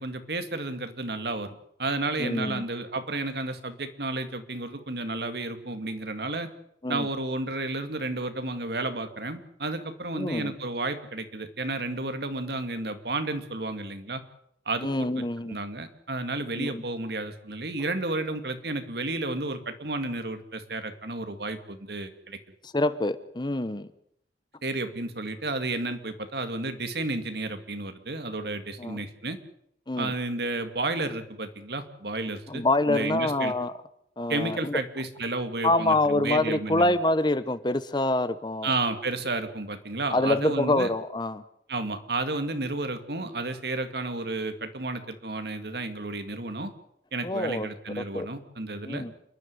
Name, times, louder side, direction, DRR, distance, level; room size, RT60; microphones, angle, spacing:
voice 1, 0.0-6.5 6.9-14.2 14.7-22.4 24.6-29.4 30.0-33.5 34.3-37.0 38.6-40.9 41.7-46.7 47.1-49.1, right 2 dB, 60° right, 9 dB, 2.2 m, -32 dB
voice 2, 2.2-2.6 6.8-7.1 10.1-10.5 14.8-15.6 16.6-16.8 22.7-23.9 28.8-29.0 29.9-30.1 32.5-33.7 34.2-34.8 35.6-38.7 40.1-41.4 47.2-47.7 48.1-48.3 48.9-49.1, left 2 dB, 25° left, 14 dB, 0.9 m, -26 dB
28.0 x 11.5 x 9.7 m, 0.74 s
head